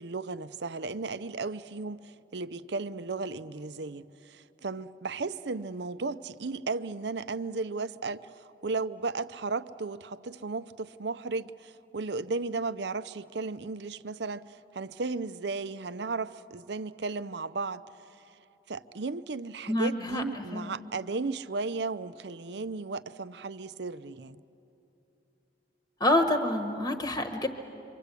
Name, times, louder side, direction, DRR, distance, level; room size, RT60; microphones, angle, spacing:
voice 1, 0.0-17.8 18.1-18.4 18.7-24.4, right 3 dB, 65° right, 0.6 m, -35 dB
voice 2, 19.7-20.2 20.5-20.7 26.0-27.5, left 1 dB, 20° left, 1.2 m, -27 dB
27.5 x 24.5 x 8.3 m
head